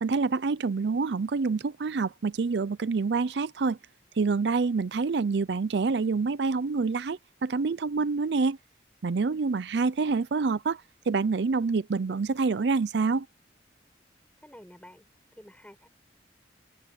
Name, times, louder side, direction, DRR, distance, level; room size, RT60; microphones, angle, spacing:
voice 1, 0.0-3.8 4.2-8.6 9.0-10.8 11.1-13.3, right 4 dB, 65° right, 0.5 m, -27 dB
voice 2, 14.4-15.1 15.3-15.9, equal, 5° left, 5.6 m, -50 dB
open air
head